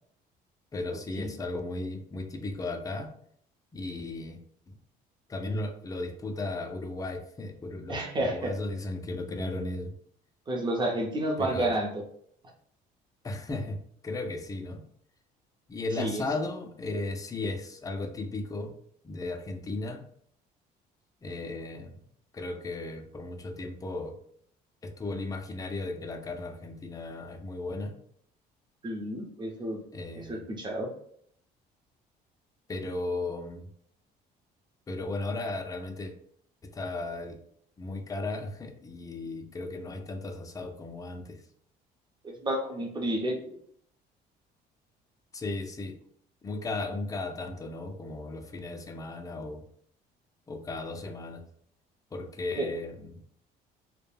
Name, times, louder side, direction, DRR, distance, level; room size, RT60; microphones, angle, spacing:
voice 1, 0.7-3.1 3.7-4.4 4.7-4.8 5.3-9.9 11.4-11.7 13.2-13.8 14.0-14.8 15.7-18.7 19.0-20.0 21.2-22.0 22.3-24.2 24.8-27.9 29.9-30.4 32.7-33.7 34.9-36.1 36.6-37.4 37.8-41.4 45.3-46.0 46.4-49.6 50.5-51.4 52.1-53.2, left 2 dB, 20° left, 5 dB, 0.4 m, -35 dB
voice 2, 7.9-8.5 10.5-12.0 16.0-16.2 28.8-29.8 30.2-30.9 42.2-43.4 52.6-52.7, right 1 dB, 25° right, 1 dB, 0.6 m, -30 dB
2.2 x 2.1 x 3.2 m, 0.65 s
cardioid pair, 110°, 17 cm